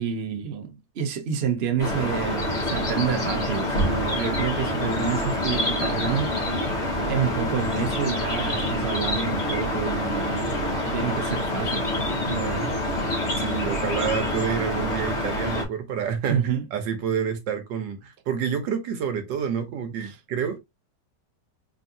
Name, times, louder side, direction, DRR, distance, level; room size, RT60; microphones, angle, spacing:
voice 1, 0.0-6.7 7.1-11.9 12.2-12.7 16.3-16.6 20.0-20.2, right 7 dB, 45° right, 1.0 m, -29 dB
sound 1, 1.8-15.6, left 1 dB, 40° left, 1.9 m, -26 dB
voice 2, 13.4-16.4 16.7-20.6, right 7 dB, 90° right, 1.6 m, -28 dB
4.0 x 3.7 x 2.7 m
omnidirectional pair, 1.9 m